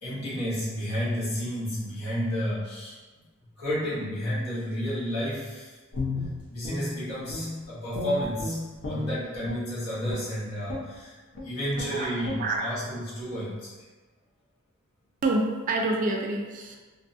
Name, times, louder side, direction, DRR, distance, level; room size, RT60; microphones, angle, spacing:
voice 1, 0.0-3.0 3.6-5.8 6.5-13.7, equal, 80° left, -9 dB, 1.2 m, -31 dB
Guitar, 5.9-7.6 7.9-9.7 10.1-10.3 10.7-11.0 11.3-11.5 11.7-11.9 12.2-12.4, left 2 dB, 55° left, 0.6 m, -34 dB
voice 2, 15.2-16.8, right 2 dB, 40° right, 1 dB, 0.3 m, -27 dB
2.6 x 2.2 x 2.6 m, 1.3 s
head